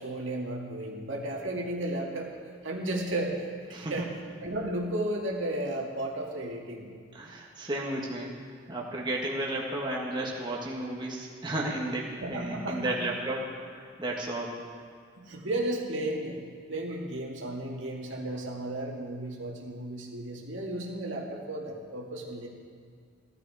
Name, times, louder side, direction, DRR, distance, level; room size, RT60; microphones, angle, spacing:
voice 1, 0.0-2.3 2.6-4.1 4.4-6.9 12.2-13.1 15.2-16.4 16.7-22.5, right 1 dB, 70° right, -1 dB, 2.0 m, -34 dB
voice 2, 3.7-4.1 7.1-8.3 8.7-14.6, right 1 dB, 25° right, -3 dB, 1.5 m, -33 dB
15.0 x 12.0 x 4.8 m, 2.1 s
head